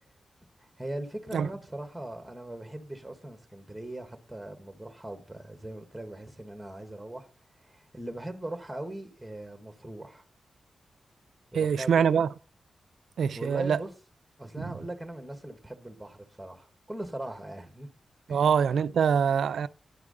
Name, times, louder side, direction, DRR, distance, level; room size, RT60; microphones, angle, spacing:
voice 1, 0.8-7.3 7.6-10.2 11.5-12.2 13.3-13.9 14.4-17.9 18.3-18.5, right 1 dB, 5° right, 1.6 m, -40 dB
voice 2, 11.5-12.3 13.2-13.8 18.3-19.7, right 7 dB, 85° right, 0.4 m, -24 dB
10.5 x 4.8 x 6.5 m
wide cardioid pair, 110°, 0 cm